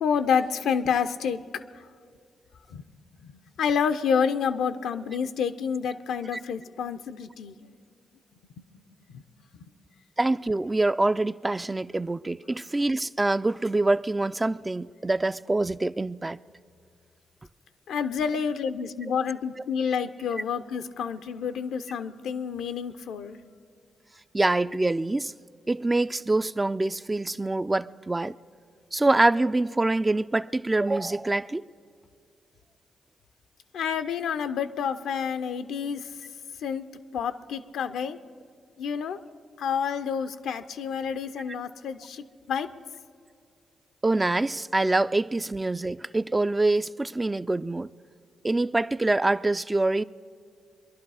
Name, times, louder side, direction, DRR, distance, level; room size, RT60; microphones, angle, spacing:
voice 1, 0.0-1.9 2.7-2.8 3.2-7.6 8.6-8.7 9.1-9.2 9.5-9.7 17.9-23.4 33.7-36.1 36.6-36.8 37.1-38.2 38.8-39.2 39.6-42.7, left 7 dB, 80° left, 0.5 m, -29 dB
voice 2, 10.2-16.4 24.3-25.3 25.7-28.4 28.9-31.6 44.0-47.9 48.4-50.0, right 2 dB, 25° right, 0.4 m, -25 dB
24.0 x 11.5 x 4.8 m
hypercardioid pair, 45°, 0 cm